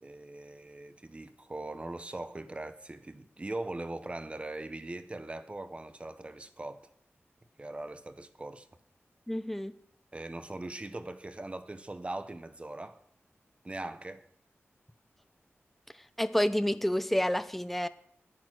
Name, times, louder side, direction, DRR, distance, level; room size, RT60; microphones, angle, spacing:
voice 1, 0.0-6.9 7.6-8.7 10.1-13.0 13.6-14.2, right 2 dB, 25° right, 0.9 m, -40 dB
voice 2, 9.3-9.7 16.2-17.9, equal, 5° left, 0.5 m, -29 dB
11.0 x 9.8 x 6.1 m
wide cardioid pair, 110°, 5 cm